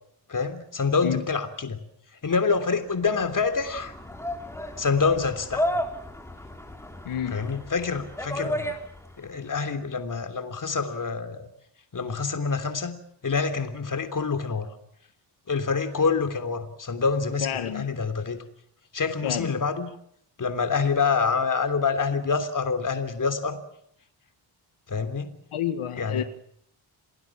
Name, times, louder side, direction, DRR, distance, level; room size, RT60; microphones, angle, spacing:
voice 1, 0.3-1.8 2.2-3.9 4.8-5.8 7.3-8.7 9.2-11.5 11.9-13.0 13.2-14.7 15.5-18.4 18.9-19.9 20.4-23.6 24.9-25.3 26.0-26.2, left 5 dB, 40° left, 8 dB, 3.3 m, -26 dB
sound 1, 2.9-9.3, equal, 5° left, 3.7 m, -33 dB
voice 2, 7.0-7.4 17.4-18.0 19.2-19.5 25.5-26.2, left 10 dB, 85° left, 9 dB, 1.9 m, -29 dB
28.5 x 19.0 x 7.4 m, 0.70 s
wide cardioid pair, 125°, 49 cm